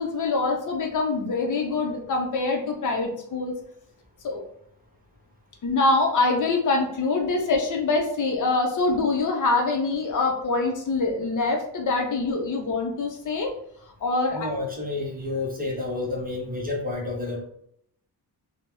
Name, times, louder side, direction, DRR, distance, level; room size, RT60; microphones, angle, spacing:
voice 1, 0.0-3.5 4.2-4.5 5.6-13.5 14.0-14.5, left 3 dB, 50° left, 1 dB, 0.6 m, -24 dB
voice 2, 14.3-17.4, left 2 dB, 20° right, -2 dB, 0.5 m, -30 dB
3.3 x 2.0 x 2.9 m, 0.69 s
wide cardioid pair, 165°, 41 cm